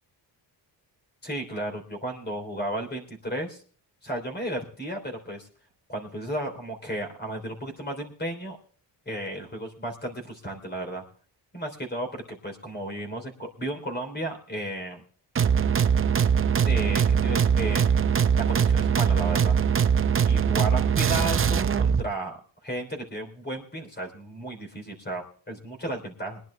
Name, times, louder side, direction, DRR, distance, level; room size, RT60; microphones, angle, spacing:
voice 1, 1.2-3.6 4.0-5.5 5.9-8.6 9.0-11.0 11.5-15.0 16.7-19.6 20.2-22.3 22.6-26.4, right 1 dB, 25° left, 4 dB, 3.3 m, -34 dB
sound 1, 15.4-22.0, right 7 dB, 30° right, 0.6 m, -22 dB
22.5 x 10.5 x 3.3 m, 0.44 s
wide cardioid pair, 150°, 43 cm